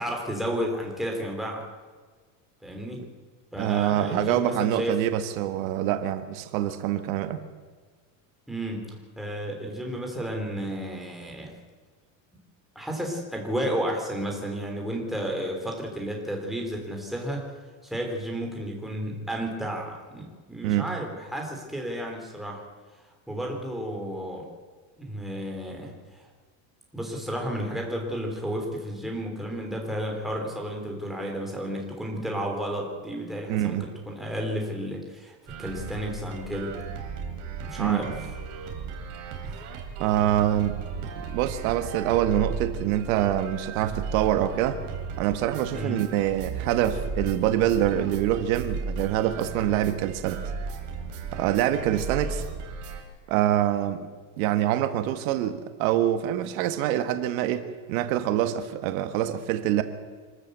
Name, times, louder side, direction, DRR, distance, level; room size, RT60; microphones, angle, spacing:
voice 1, 0.0-1.6 2.6-3.0 3.5-5.0 8.5-11.5 12.7-17.4 17.8-22.6 23.3-24.5 25.0-26.3 26.9-36.8 37.6-38.1 39.4-39.6 45.7-46.0, equal, ahead, 0 dB, 3.2 m, -32 dB
voice 2, 3.6-7.4 20.6-20.9 33.5-33.9 37.8-38.1 40.0-44.8 45.2-50.5 51.3-52.4 53.3-54.1 54.4-59.8, right 12 dB, 75° right, 9 dB, 1.5 m, -25 dB
sound 1, 35.5-53.0, right 5 dB, 45° right, 3.4 m, -35 dB
25.5 x 13.5 x 8.0 m, 1.5 s
cardioid pair, 165°, 41 cm